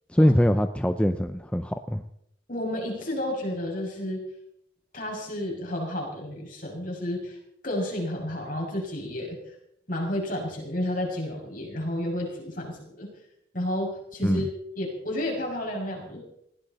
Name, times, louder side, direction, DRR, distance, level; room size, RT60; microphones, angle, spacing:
voice 1, 0.1-2.0 14.2-14.5, equal, 5° left, 8 dB, 0.6 m, -23 dB
voice 2, 2.5-4.2 4.9-7.4 7.6-9.5 9.9-13.1 13.5-14.5 14.8-16.2, left 1 dB, 45° left, 0 dB, 6.4 m, -31 dB
20.0 x 16.5 x 4.2 m, 0.76 s
head